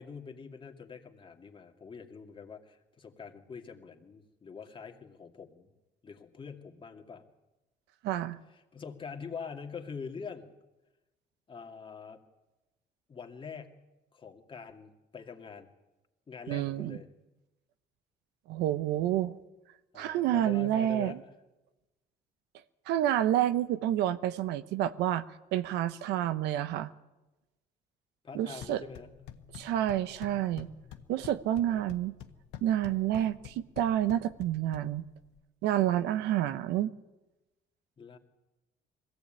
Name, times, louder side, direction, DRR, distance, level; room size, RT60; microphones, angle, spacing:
voice 1, 0.0-5.7 6.0-7.3 8.7-10.5 11.5-12.2 13.1-13.8 14.1-15.7 16.3-17.1 19.9-21.2 28.2-29.1 31.5-31.8 38.0-38.2, left 6 dB, 30° left, 3 dB, 2.4 m, -44 dB
voice 2, 8.0-8.4 16.5-17.0 18.5-19.4 19.9-21.2 22.9-26.9 28.3-28.8 29.5-30.7 31.1-32.2 32.6-35.1 35.6-36.9, right 12 dB, 90° right, 13 dB, 0.9 m, -29 dB
sound 1, 28.4-35.4, left 10 dB, 90° left, 1.5 m, -49 dB
21.5 x 16.5 x 9.0 m, 1.0 s
cardioid pair, 110°, 17 cm